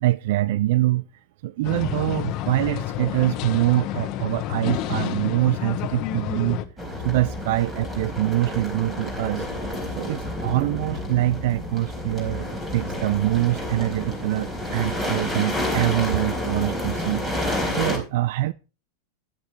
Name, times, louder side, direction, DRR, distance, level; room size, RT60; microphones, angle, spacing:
voice 1, 0.0-1.0 1.4-6.6 7.0-9.5 10.0-17.2 17.7-18.5, right 16 dB, 60° right, 0.5 m, -24 dB
sound 1, 1.6-6.7, left 11 dB, 35° left, 1.2 m, -29 dB
sound 2, 6.8-18.0, left 1 dB, 10° right, 4.6 m, -29 dB
13.5 x 10.0 x 3.2 m
supercardioid pair, 155°, 0 cm